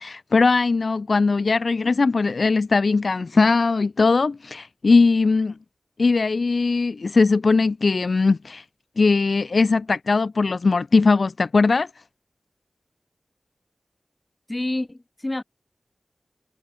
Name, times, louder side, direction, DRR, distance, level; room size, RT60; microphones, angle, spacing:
voice 1, 0.0-5.5 6.0-8.6 9.0-11.9, left 4 dB, 75° left, 0.9 m, -20 dB
voice 2, 14.5-15.4, left 1 dB, 30° left, 6.1 m, -28 dB
wide cardioid pair, 60°, 0 cm